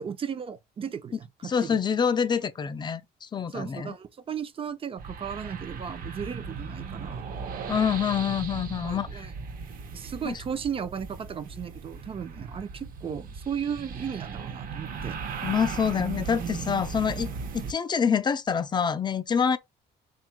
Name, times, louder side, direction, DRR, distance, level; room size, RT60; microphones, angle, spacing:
voice 1, 0.0-1.8 3.5-7.3 8.8-9.3 9.9-15.2, right 7 dB, 30° right, 0.6 m, -35 dB
voice 2, 1.4-3.9 7.7-9.3 10.2-10.4 15.4-17.3 17.5-19.6, left 7 dB, 25° left, 0.5 m, -26 dB
sound 1, 5.0-17.7, right 5 dB, 55° right, 0.9 m, -37 dB
3.5 x 2.4 x 4.4 m
cardioid pair, 110°, 17 cm